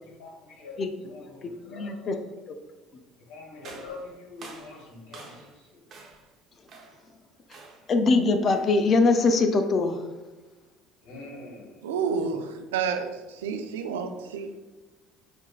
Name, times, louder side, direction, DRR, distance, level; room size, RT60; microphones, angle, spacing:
voice 1, 0.1-2.4 3.3-5.8 11.0-12.4, left 3 dB, 70° left, -1 dB, 1.0 m, -45 dB
voice 2, 1.4-2.2 7.9-10.0, left 3 dB, 45° left, 7 dB, 0.4 m, -22 dB
sound 1, 3.6-5.6 5.9-6.3 6.7-7.1 7.5-7.9 8.5-8.8, right 3 dB, 50° right, 0.7 m, -47 dB
voice 3, 11.8-14.6, right 6 dB, 80° right, 6 dB, 0.3 m, -30 dB
4.6 x 2.5 x 2.3 m, 1.2 s
hypercardioid pair, 65°, 0 cm